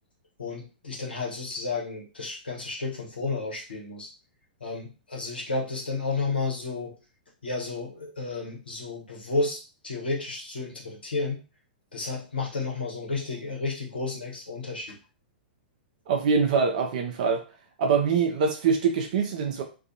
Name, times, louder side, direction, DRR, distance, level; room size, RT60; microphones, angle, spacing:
voice 1, 0.4-4.1 4.6-6.9 7.4-11.4 11.9-15.0, left 3 dB, 80° left, -2 dB, 1.0 m, -32 dB
voice 2, 16.1-17.4 17.8-19.6, right 5 dB, 50° right, 4 dB, 0.5 m, -24 dB
2.4 x 2.3 x 2.7 m, 0.33 s
figure-of-eight pair, 105°, 5 cm